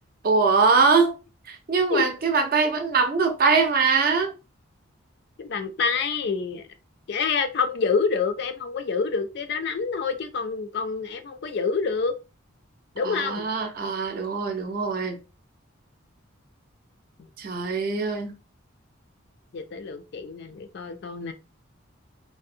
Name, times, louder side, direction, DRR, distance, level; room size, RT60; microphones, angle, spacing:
voice 1, 0.2-1.2 1.5-4.3 13.0-15.2 17.4-18.3, right 4 dB, 45° right, 0.5 m, -22 dB
voice 2, 5.4-6.7 7.1-12.2 13.0-13.5 19.5-21.3, left 5 dB, 50° left, 0.3 m, -27 dB
2.6 x 2.0 x 2.5 m
head